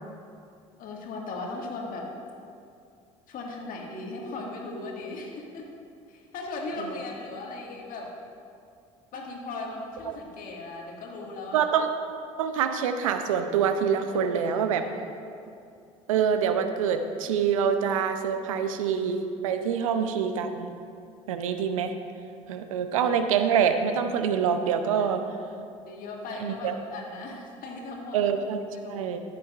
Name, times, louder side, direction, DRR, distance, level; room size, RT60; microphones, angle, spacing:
voice 1, 0.8-2.1 3.3-5.7 6.1-8.1 9.1-11.6 14.1-15.1 25.0-28.2 28.7-29.1, left 3 dB, 55° left, 0 dB, 1.8 m, -38 dB
voice 2, 11.5-11.9 12.4-14.8 16.1-20.7 21.3-21.9 22.5-25.2 26.4-26.8 28.1-29.2, right 7 dB, 80° right, 8 dB, 0.6 m, -26 dB
14.5 x 7.5 x 2.5 m, 2.4 s
hypercardioid pair, 60°, 17 cm